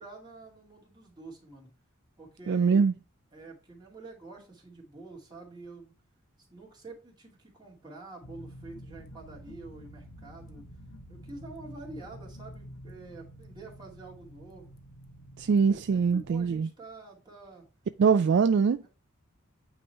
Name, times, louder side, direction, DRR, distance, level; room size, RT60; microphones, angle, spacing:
voice 1, 0.0-1.7 2.2-2.8 3.3-5.9 6.4-10.7 11.1-14.7 15.7-17.7, right 3 dB, 20° right, 2.4 m, -47 dB
voice 2, 2.5-2.9 15.4-16.7 18.0-18.8, right 5 dB, 55° right, 0.3 m, -23 dB
sound 1, 8.2-16.6, equal, 85° left, 0.8 m, -48 dB
8.9 x 3.0 x 4.5 m
head